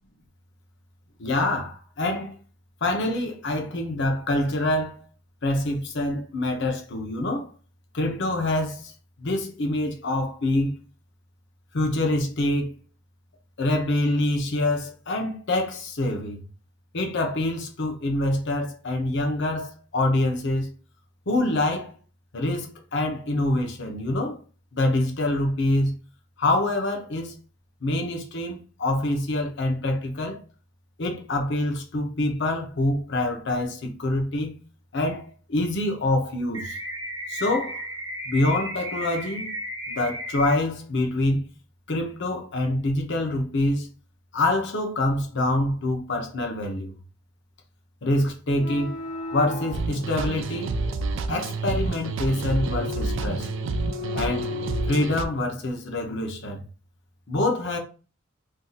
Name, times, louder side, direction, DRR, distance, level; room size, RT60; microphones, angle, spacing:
voice 1, 1.2-2.4 2.8-5.0 5.4-7.5 7.9-8.9 9.2-10.8 11.7-12.8 13.6-16.4 16.9-20.7 21.3-22.0 22.3-24.4 24.7-26.0 26.4-27.3 27.8-30.4 31.0-34.5 34.9-36.8 37.3-37.8 38.3-39.5 39.9-41.5 41.9-43.9 44.3-46.9 48.0-49.0 49.3-50.7 51.3-53.5 54.1-54.5 54.9-56.6 57.3-57.8, left 1 dB, 60° left, 0.8 m, -25 dB
sound 1, 36.5-40.5, right 1 dB, 15° right, 0.7 m, -34 dB
sound 2, 48.5-55.4, left 4 dB, 90° left, 1.2 m, -37 dB
sound 3, 49.7-55.2, right 3 dB, 65° right, 0.4 m, -29 dB
2.6 x 2.4 x 3.9 m
head